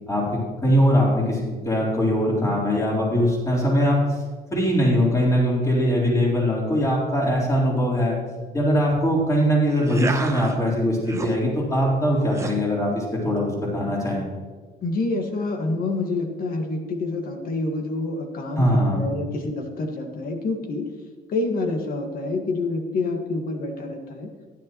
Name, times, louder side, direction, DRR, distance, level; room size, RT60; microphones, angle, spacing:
voice 1, 0.1-4.2 4.5-8.2 8.5-14.2 18.6-19.0, equal, 20° left, -4 dB, 4.0 m, -21 dB
sound 1, 9.7-10.6 10.9-11.3 12.3-12.5, right 3 dB, 15° right, 1.0 m, -31 dB
voice 2, 14.8-20.8 21.3-24.3, left 2 dB, 60° left, 4 dB, 1.8 m, -27 dB
15.0 x 11.0 x 3.1 m, 1.5 s
cardioid pair, 110°, 17 cm